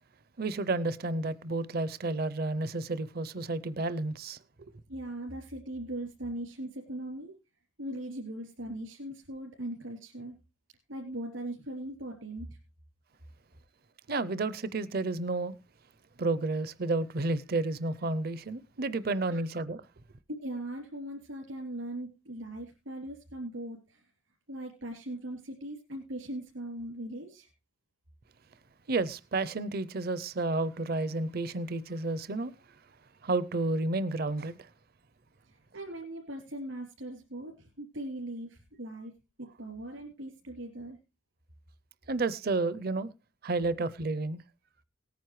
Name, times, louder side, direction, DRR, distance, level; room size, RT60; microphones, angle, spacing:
voice 1, 0.4-4.4 14.1-15.5 16.2-19.8 28.9-32.5 33.2-34.6 42.1-43.1 43.4-44.4, right 2 dB, 50° right, 0.6 m, -31 dB
voice 2, 4.9-7.3 7.8-10.4 10.9-12.6 19.3-19.4 20.4-24.0 24.5-27.5 35.4-39.1 39.4-41.0, right 1 dB, 85° right, 3.1 m, -40 dB
19.0 x 9.4 x 3.2 m
head